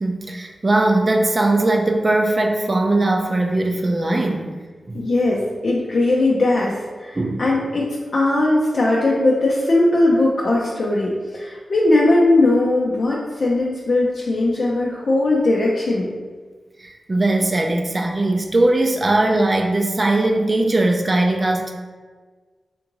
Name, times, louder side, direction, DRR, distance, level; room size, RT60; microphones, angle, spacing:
voice 1, 0.0-4.5 4.9-5.0 7.2-7.4 16.8-21.7, right 2 dB, 35° right, 2 dB, 0.4 m, -19 dB
voice 2, 4.9-16.1, left 2 dB, 65° left, -4 dB, 0.5 m, -19 dB
3.5 x 2.5 x 3.0 m, 1.4 s
cardioid pair, 60°, 0 cm